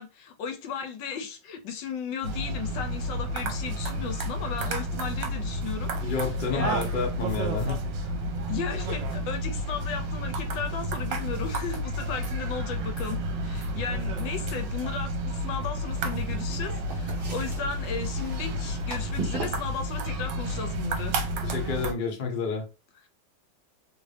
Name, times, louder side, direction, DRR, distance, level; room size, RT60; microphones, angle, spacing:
voice 1, 0.0-6.2 6.5-6.8 8.5-21.2, left 6 dB, 75° left, 1.2 m, -35 dB
sound 1, 2.2-21.9, right 1 dB, 75° right, 1.3 m, -31 dB
voice 2, 6.0-8.1 21.4-22.6, left 4 dB, 45° left, 0.6 m, -30 dB
sound 2, 15.9-22.1, right 4 dB, 45° right, 0.7 m, -41 dB
3.2 x 2.6 x 3.2 m
omnidirectional pair, 2.1 m